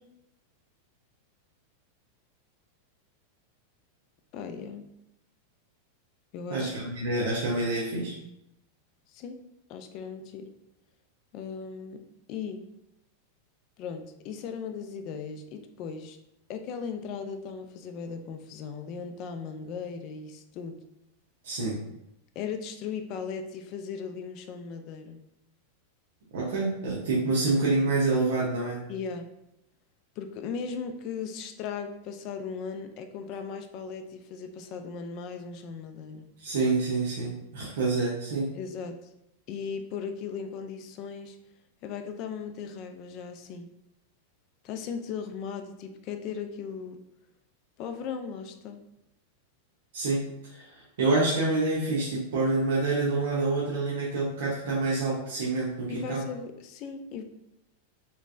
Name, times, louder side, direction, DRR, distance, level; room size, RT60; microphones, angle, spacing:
voice 1, 4.3-4.8 6.3-6.7 9.1-9.4 9.7-10.5 11.3-12.0 12.3-12.7 13.8-16.2 16.5-20.8 22.4-25.2 28.9-29.3 30.2-36.3 38.5-39.0 39.5-41.4 41.8-43.7 44.6-47.0 47.8-48.8 55.9-57.2, left 6 dB, 40° left, 7 dB, 0.4 m, -37 dB
voice 2, 6.5-8.2 21.4-21.8 26.3-28.8 36.4-38.5 49.9-56.2, right 3 dB, 80° right, -6 dB, 0.8 m, -27 dB
3.2 x 3.1 x 2.6 m, 0.83 s
supercardioid pair, 140°, 0 cm